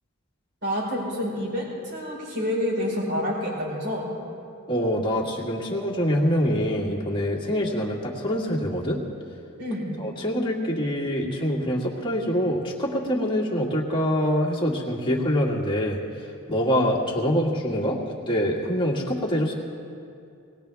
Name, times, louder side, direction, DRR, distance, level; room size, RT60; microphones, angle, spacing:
voice 1, 0.6-4.1 9.6-9.9, equal, 55° right, -4 dB, 4.7 m, -28 dB
voice 2, 4.7-9.0 10.0-16.0 16.5-19.5, equal, 25° left, -4 dB, 2.1 m, -25 dB
20.0 x 18.5 x 3.5 m, 2.5 s
head